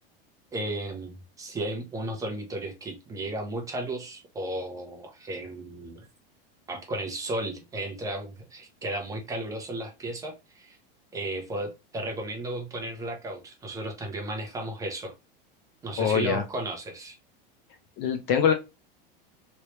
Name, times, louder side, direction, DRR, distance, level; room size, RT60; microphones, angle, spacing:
voice 1, 0.5-6.1 6.7-10.8 11.1-15.1 15.8-17.2, right 1 dB, 10° right, 3 dB, 0.6 m, -34 dB
voice 2, 16.0-16.4 18.0-18.5, left 7 dB, 35° left, 6 dB, 0.4 m, -23 dB
3.2 x 2.9 x 3.0 m, 0.26 s
supercardioid pair, 165°, 29 cm